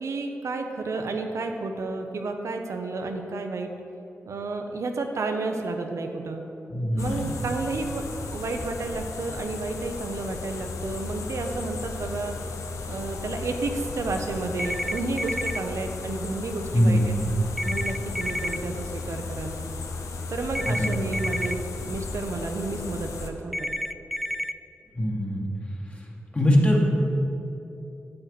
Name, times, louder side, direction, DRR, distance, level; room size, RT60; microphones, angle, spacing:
voice 1, 0.0-3.7 4.3-6.4 6.9-8.0 8.3-12.4 12.9-17.2 17.6-19.6 20.3-23.7, right 3 dB, 75° right, 4 dB, 0.6 m, -31 dB
voice 2, 6.7-7.4 16.7-17.5 20.6-21.2 24.9-25.4 26.3-26.8, equal, 25° left, -2 dB, 1.9 m, -22 dB
sound 1, 7.0-23.3, left 3 dB, 90° left, 0.6 m, -35 dB
sound 2, 14.6-15.6 17.6-18.6 20.6-21.5 23.5-24.5, left 1 dB, ahead, 0.3 m, -30 dB
8.6 x 7.8 x 4.0 m, 2.9 s
cardioid pair, 50°, 5 cm